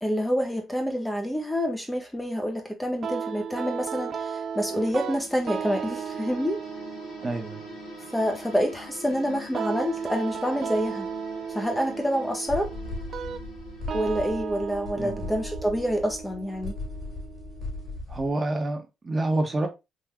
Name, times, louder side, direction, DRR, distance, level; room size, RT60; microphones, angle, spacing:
voice 1, 0.0-6.6 8.1-11.1 11.5-12.7 13.9-16.8, equal, 10° left, 0.8 m, -27 dB
sound 1, 3.0-18.0, right 7 dB, 55° right, 0.4 m, -36 dB
sound 2, 4.5-14.9, left 4 dB, 90° left, 1.5 m, -45 dB
voice 2, 7.2-7.7 15.0-15.3 18.1-19.7, right 2 dB, 30° right, 1.0 m, -28 dB
sound 3, 10.8-11.1 11.5-11.6 12.0-12.1 12.5-18.3, left 2 dB, 40° left, 2.1 m, -38 dB
3.7 x 2.6 x 3.0 m
cardioid pair, 75°, 0 cm